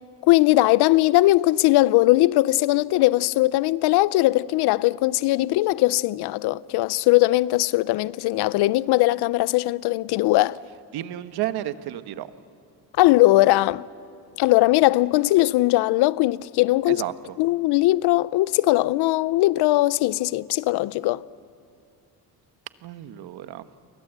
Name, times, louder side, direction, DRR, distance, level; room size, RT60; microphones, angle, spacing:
voice 1, 0.2-10.6 13.0-13.9 14.4-17.0 17.4-21.2, left 18 dB, 90° left, 0.6 m, -20 dB
voice 2, 10.9-12.3 16.9-17.1 22.8-23.7, right 13 dB, 75° right, 1.2 m, -31 dB
30.0 x 24.0 x 8.0 m
cardioid pair, 130°, 38 cm